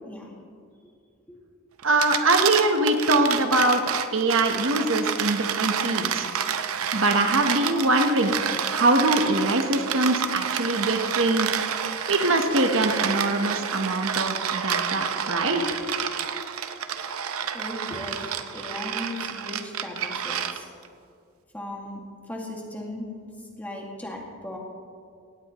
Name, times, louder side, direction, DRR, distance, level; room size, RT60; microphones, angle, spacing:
voice 1, 1.8-3.8 4.1-6.3 6.9-8.4 8.6-11.6 12.1-15.6, right 2 dB, 60° right, 5 dB, 1.0 m, -23 dB
sound 1, 1.8-20.9, right 8 dB, 80° right, 0.8 m, -29 dB
voice 2, 17.5-20.7 21.5-22.0 22.3-23.1 23.6-24.6, left 1 dB, 10° left, -1 dB, 1.9 m, -37 dB
17.0 x 17.0 x 3.0 m, 2.3 s
head